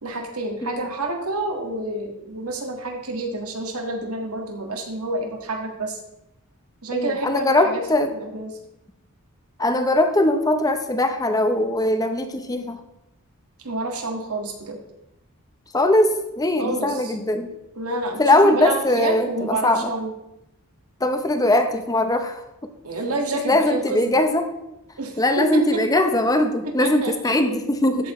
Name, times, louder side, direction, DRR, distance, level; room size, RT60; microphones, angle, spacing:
voice 1, 0.0-6.0 6.8-7.8 8.2-8.5 13.6-14.8 16.6-17.1 17.7-20.1 22.8-24.1 25.0-25.8 26.6-27.4 28.0-28.1, right 2 dB, 85° right, 3 dB, 1.7 m, -28 dB
voice 2, 6.9-8.1 9.6-12.8 15.7-17.5 18.2-19.9 21.0-22.4 23.4-24.5 25.2-28.1, left 1 dB, 15° left, 7 dB, 0.7 m, -20 dB
13.5 x 8.1 x 3.1 m, 0.88 s
head